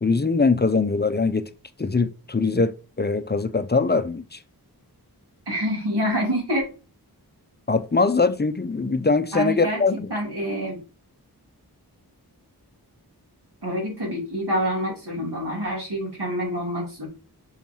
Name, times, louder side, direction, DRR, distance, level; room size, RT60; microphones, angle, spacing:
voice 1, 0.0-1.5 1.8-4.4 7.7-10.1, left 4 dB, 25° left, 0.5 m, -22 dB
voice 2, 5.5-6.6 9.3-9.8 10.1-10.8 13.6-17.1, equal, 85° right, 3.2 m, -26 dB
6.3 x 2.9 x 5.4 m
wide cardioid pair, 60°, 39 cm